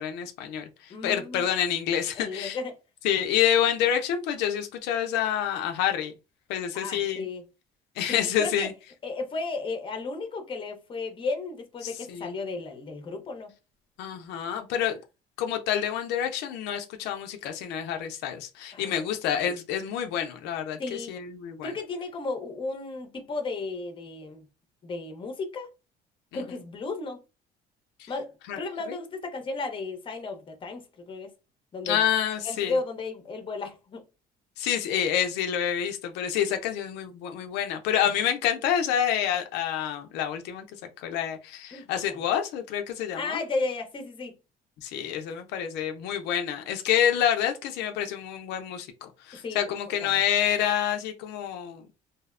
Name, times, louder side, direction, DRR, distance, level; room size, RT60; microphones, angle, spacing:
voice 1, 0.0-2.6 3.0-6.1 6.5-7.3 8.0-8.7 12.1-12.3 14.0-14.9 15.4-21.7 26.3-26.4 28.0-28.1 28.5-28.6 31.9-32.7 34.6-40.6 41.0-43.4 44.8-51.8, left 9 dB, 85° left, 0.4 m, -28 dB
voice 2, 0.9-1.5 2.1-2.8 6.7-7.5 8.1-8.7 9.0-13.5 18.7-19.1 20.8-21.1 21.6-24.4 24.8-25.7 26.3-27.2 28.1-31.3 31.7-32.1 32.4-34.0 38.0-38.1 41.7-42.2 43.1-44.3 49.3-49.8 50.0-50.2, left 3 dB, 30° left, 0.6 m, -34 dB
2.6 x 2.0 x 2.4 m
cardioid pair, 110°, 17 cm